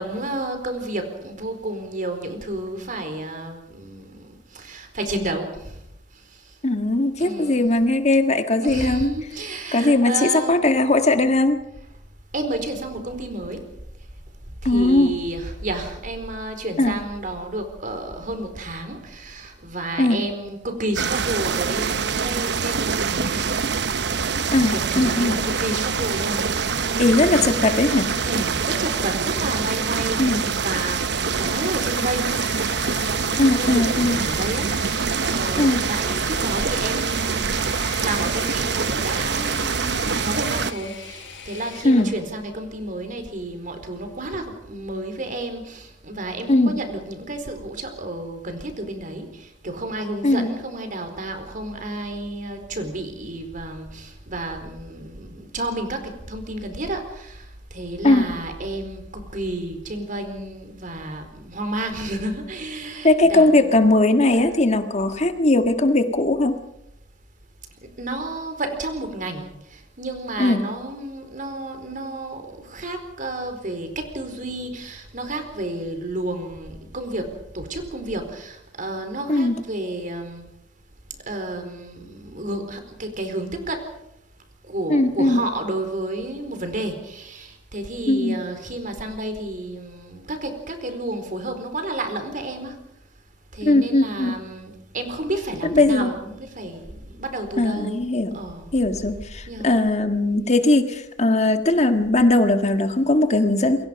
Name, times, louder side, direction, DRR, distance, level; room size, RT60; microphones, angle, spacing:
voice 1, 0.0-5.8 6.1-6.5 7.2-7.7 8.6-10.6 12.3-13.6 14.6-23.5 24.1-27.4 28.2-63.7 64.4-64.5 67.8-80.5 81.3-83.9 84.7-92.8 93.5-98.1 98.3-98.7 99.4-99.7, right 2 dB, 45° right, 7 dB, 4.4 m, -31 dB
voice 2, 6.6-9.1 9.7-11.6 14.6-15.1 16.8-16.9 20.0-20.2 24.5-25.4 27.0-28.1 30.2-30.4 33.4-34.2 35.6-35.8 41.8-42.1 46.5-46.8 50.2-50.5 58.0-58.3 63.0-66.6 70.4-70.6 79.3-79.6 84.9-85.4 88.1-88.4 93.6-94.3 95.7-96.1 97.6-98.3 98.7-103.8, left 2 dB, 40° left, 7 dB, 1.7 m, -19 dB
sound 1, 20.9-40.7, right 5 dB, 65° right, 1.0 m, -25 dB
Engine / Mechanisms, 31.0-42.2, left 6 dB, 85° left, 4.8 m, -39 dB
28.0 x 23.0 x 5.3 m, 0.78 s
head